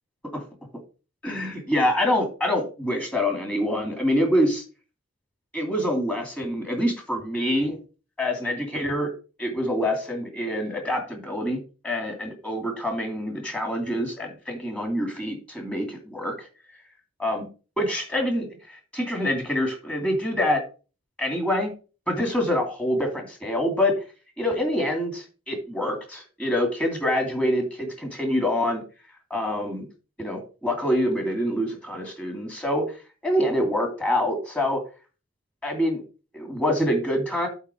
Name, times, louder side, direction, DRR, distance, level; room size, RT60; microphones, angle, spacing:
voice 1, 1.2-4.6 5.5-7.8 8.2-9.1 9.4-16.5 17.2-17.5 17.8-20.6 21.2-21.7 22.1-23.9 24.4-28.8 29.3-29.9 30.2-32.8 33.2-34.8 35.6-36.0 36.3-37.5, left 1 dB, 5° left, 2 dB, 2.6 m, -26 dB
8.1 x 4.0 x 6.5 m, 0.34 s
head